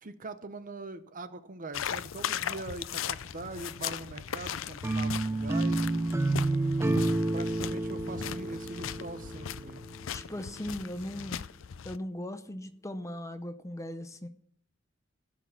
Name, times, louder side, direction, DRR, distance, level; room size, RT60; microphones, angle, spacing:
voice 1, 0.0-6.3 7.3-9.8 10.3-10.5, right 2 dB, 45° right, 11 dB, 0.9 m, -42 dB
sound 1, 1.7-12.0, left 9 dB, 70° left, 0.5 m, -38 dB
sound 2, 4.8-9.9, right 2 dB, 15° right, 0.4 m, -29 dB
voice 2, 10.1-11.4 11.8-14.3, left 1 dB, 15° left, 10 dB, 0.7 m, -38 dB
16.0 x 6.3 x 7.0 m, 0.66 s
head